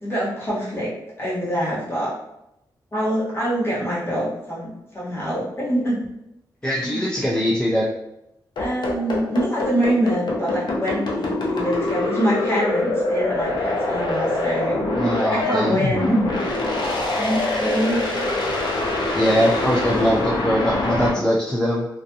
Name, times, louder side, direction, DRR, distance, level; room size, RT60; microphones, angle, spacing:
voice 1, 0.0-0.9 1.2-2.1 2.9-6.0 6.6-7.0 8.6-16.4 17.2-18.0, equal, 30° left, -7 dB, 1.1 m, -25 dB
voice 2, 6.6-7.9 14.9-15.8 19.1-21.9, equal, 10° left, -4 dB, 0.3 m, -21 dB
sound 1, 8.6-21.1, left 2 dB, 70° left, 0.5 m, -24 dB
2.5 x 2.3 x 2.6 m, 0.84 s
wide cardioid pair, 120°, 8 cm